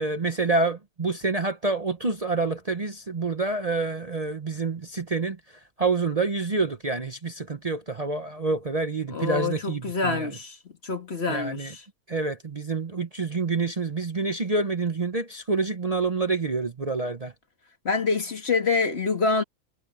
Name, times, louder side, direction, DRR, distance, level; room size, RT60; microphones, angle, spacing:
voice 1, 0.0-10.4 11.3-11.7 12.1-17.3, right 3 dB, 30° right, 0.9 m, -27 dB
voice 2, 9.1-10.6 10.8-11.8 17.8-19.4, left 4 dB, 50° left, 2.2 m, -26 dB
omnidirectional pair, 1.4 m